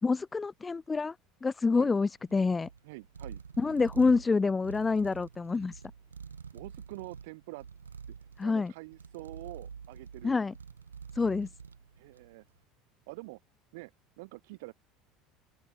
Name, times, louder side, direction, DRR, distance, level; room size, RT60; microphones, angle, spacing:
voice 1, 0.0-1.2 1.4-2.7 3.6-5.7 8.4-8.7 10.2-10.5 11.2-11.5, left 4 dB, 20° left, 1.8 m, -27 dB
sound 1, 1.8-12.4, right 6 dB, 85° right, 3.5 m, -47 dB
voice 2, 2.8-3.4 6.5-7.7 8.1-8.2 8.4-10.3 12.0-12.4 13.1-13.4 13.7-13.9 14.2-14.7, right 24 dB, 65° right, 3.8 m, -46 dB
open air
figure-of-eight pair, 65°, 0 cm